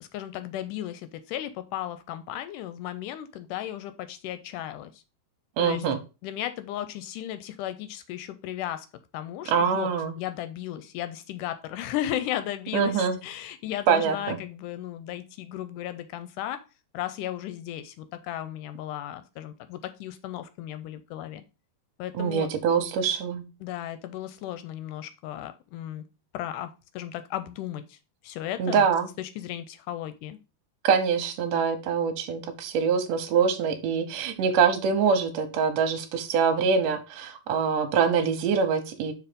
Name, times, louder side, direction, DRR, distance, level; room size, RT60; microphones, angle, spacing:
voice 1, 0.0-5.0 5.6-5.8 6.2-8.9 9.1-9.9 10.2-16.6 16.9-21.4 22.0-22.5 23.6-26.0 26.3-28.0 28.2-28.9 29.2-30.4, left 12 dB, 80° left, 11 dB, 2.0 m, -35 dB
voice 2, 5.6-6.0 9.5-10.2 12.7-13.2 13.9-14.4 22.1-23.4 28.6-29.1 30.8-39.1, right 6 dB, 70° right, 6 dB, 1.7 m, -24 dB
5.8 x 4.0 x 5.0 m, 0.30 s
omnidirectional pair, 4.0 m